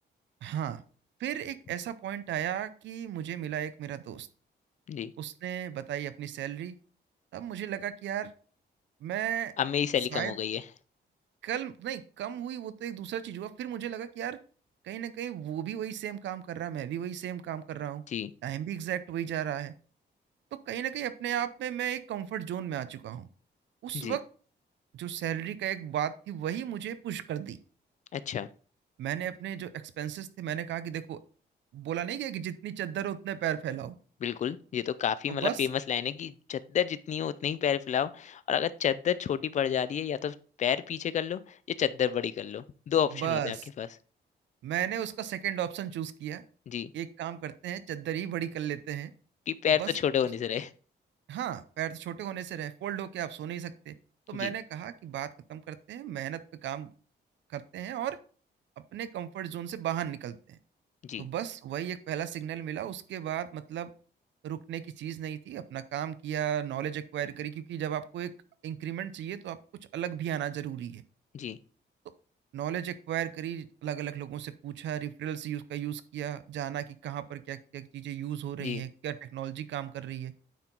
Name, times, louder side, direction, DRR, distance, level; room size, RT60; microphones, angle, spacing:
voice 1, 0.4-0.8 1.2-4.3 5.2-6.8 7.3-8.3 9.0-9.5 10.1-10.3 11.4-14.4 14.8-18.0 18.4-19.7 20.5-23.3 23.8-24.2 24.9-27.6 29.0-31.2 31.7-34.0 35.3-35.6 43.1-43.7 44.6-46.4 46.9-49.1 49.8-49.9 51.3-53.9 54.3-56.9 57.5-58.2 58.9-60.6 61.2-63.9 64.4-68.3 68.6-69.6 69.9-71.0 72.5-80.3, right 10 dB, 90° right, 14 dB, 0.6 m, -35 dB
voice 2, 9.6-10.6 18.1-18.3 23.9-24.2 28.1-28.5 34.2-43.9 46.7-46.9 49.5-50.7 54.3-54.5 61.0-61.3 71.3-71.6 78.6-78.8, left 9 dB, 40° left, 15 dB, 0.4 m, -30 dB
9.2 x 4.5 x 3.8 m, 0.41 s
wide cardioid pair, 175°, 18 cm